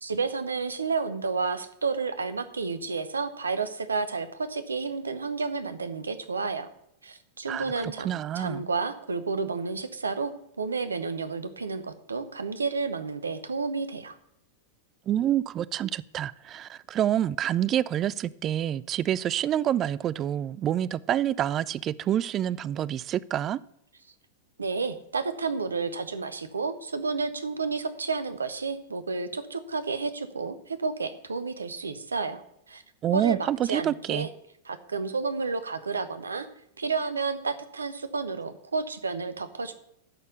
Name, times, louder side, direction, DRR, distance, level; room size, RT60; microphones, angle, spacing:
voice 1, 0.0-6.7 7.0-8.1 8.3-10.3 10.6-14.2 24.6-32.4 32.7-32.8 33.1-34.3 34.7-36.5 36.8-39.7, right 4 dB, 80° right, 0.9 m, -31 dB
voice 2, 7.5-8.6 15.1-23.6 33.0-34.3, right 11 dB, 30° right, 0.4 m, -27 dB
11.5 x 4.4 x 8.2 m
figure-of-eight pair, 95°, 0 cm